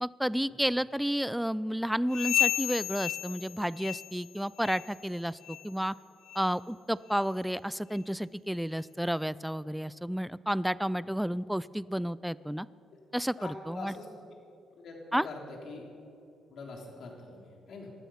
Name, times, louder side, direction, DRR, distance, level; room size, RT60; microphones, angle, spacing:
voice 1, 0.0-5.9 6.4-12.7 13.1-13.9 15.1-15.3, equal, ahead, 19 dB, 0.3 m, -31 dB
sound 1, 2.1-4.3 4.6-5.0 5.4-5.7 6.3-6.4 7.1-7.2 8.0-8.1, left 12 dB, 80° left, 0.3 m, -32 dB
voice 2, 13.1-14.1 14.8-15.4 15.6-15.9 16.5-17.9, left 3 dB, 65° left, 1 dB, 3.3 m, -44 dB
18.5 x 12.5 x 5.8 m, 2.6 s
cardioid pair, 90°, 0 cm